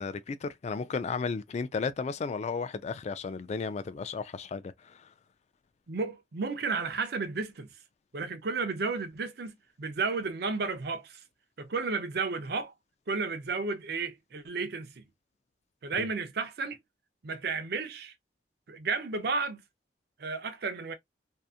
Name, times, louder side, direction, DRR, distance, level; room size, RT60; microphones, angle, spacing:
voice 1, 0.0-5.1 16.0-16.1, left 5 dB, 40° left, 0.3 m, -34 dB
voice 2, 5.9-7.7 8.1-11.2 11.6-12.7 13.1-15.0 15.8-16.8 17.2-18.1 18.7-19.6 20.2-20.9, right 4 dB, 60° right, 0.6 m, -32 dB
2.7 x 2.4 x 2.4 m
head